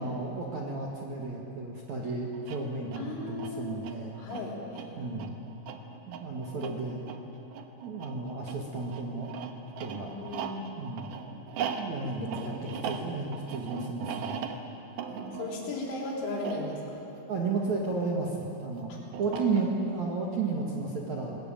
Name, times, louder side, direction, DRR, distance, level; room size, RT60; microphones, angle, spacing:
voice 1, 0.0-4.2 5.0-5.3 6.1-7.0 7.8-9.3 9.8-10.1 10.8-11.1 11.8-14.5 17.3-18.9 19.2-21.4, right 3 dB, 55° right, -1 dB, 2.3 m, -33 dB
sound 1, 2.3-18.1 19.1-20.0, right 7 dB, 80° right, 1.9 m, -40 dB
voice 2, 3.0-3.8 4.2-5.1 10.2-10.7 12.2-13.0 15.1-17.0 18.9-19.0 19.3-19.4, left 2 dB, 75° left, -1 dB, 5.8 m, -37 dB
21.0 x 20.0 x 9.0 m, 2.9 s
omnidirectional pair, 5.7 m